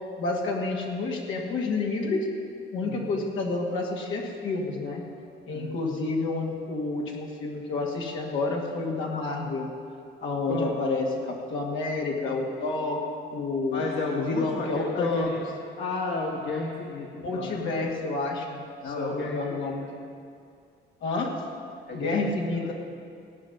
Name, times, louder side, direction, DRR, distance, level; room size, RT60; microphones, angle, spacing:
voice 1, 0.2-2.3 2.7-5.0 5.5-9.7 10.2-13.0 13.3-13.9 14.1-15.4 17.2-18.7 19.0-20.0 21.0-21.3 21.9-22.7, left 3 dB, 80° left, -2 dB, 2.3 m, -29 dB
voice 2, 2.8-3.1 5.5-5.8 10.5-10.7 13.7-15.4 15.8-17.6 18.8-19.7 21.9-22.2 22.6-22.7, left 3 dB, 65° left, -2 dB, 1.9 m, -32 dB
17.0 x 5.8 x 9.3 m, 2.3 s
cardioid pair, 90°, 20 cm